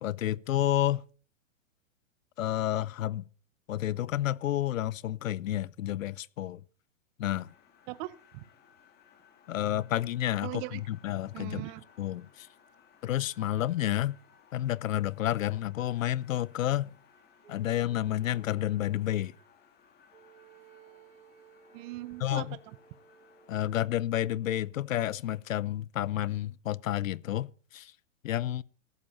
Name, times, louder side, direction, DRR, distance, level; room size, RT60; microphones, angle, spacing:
voice 1, 0.0-1.0 2.4-3.2 3.7-6.6 7.2-7.5 9.5-11.6 12.0-12.5 13.0-14.1 14.5-16.9 17.5-19.3 22.2-22.6 23.5-27.9 28.2-28.6, left 13 dB, 90° left, 0.7 m, -30 dB
sound 1, 7.3-23.8, left 7 dB, 25° left, 2.2 m, -61 dB
voice 2, 7.9-8.4 10.4-10.8 11.3-11.8 21.7-22.8, right 19 dB, 30° right, 0.6 m, -40 dB
sound 2, 17.4-19.1 20.1-23.7, right 7 dB, 80° right, 1.5 m, -58 dB
15.0 x 7.7 x 5.4 m
hypercardioid pair, 135°, 38 cm